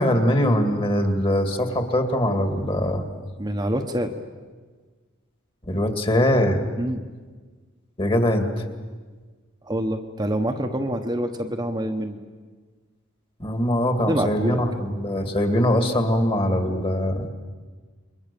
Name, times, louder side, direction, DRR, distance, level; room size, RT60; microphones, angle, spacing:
voice 1, 0.0-3.1 5.7-6.6 8.0-8.5 13.4-17.3, left 1 dB, 25° left, 6 dB, 2.2 m, -22 dB
voice 2, 3.4-4.1 6.8-7.0 9.6-12.2 14.1-14.6, right 1 dB, 20° right, 3 dB, 1.2 m, -26 dB
29.0 x 22.5 x 7.0 m, 1.4 s
head